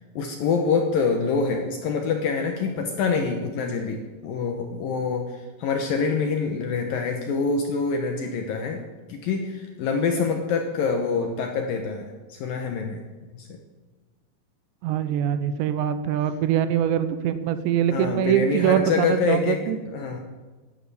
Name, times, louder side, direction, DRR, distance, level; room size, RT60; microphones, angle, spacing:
voice 1, 0.0-8.8 9.1-13.0 13.3-13.5 17.9-20.2, left 5 dB, 70° left, 4 dB, 2.3 m, -26 dB
voice 2, 14.8-19.8, right 9 dB, 80° right, 11 dB, 2.9 m, -23 dB
12.0 x 11.5 x 8.5 m, 1.3 s
omnidirectional pair, 5.3 m